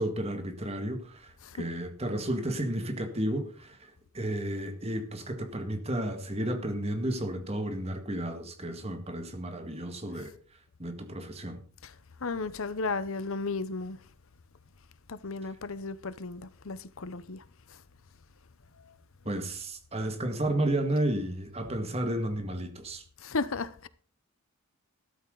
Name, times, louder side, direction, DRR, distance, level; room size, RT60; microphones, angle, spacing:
voice 1, 0.0-10.3 10.8-11.6 19.3-23.0, right 1 dB, 30° right, 1.9 m, -32 dB
voice 2, 12.2-14.0 15.1-17.4 23.2-23.9, left 3 dB, 65° left, 0.8 m, -34 dB
13.0 x 13.0 x 3.9 m
head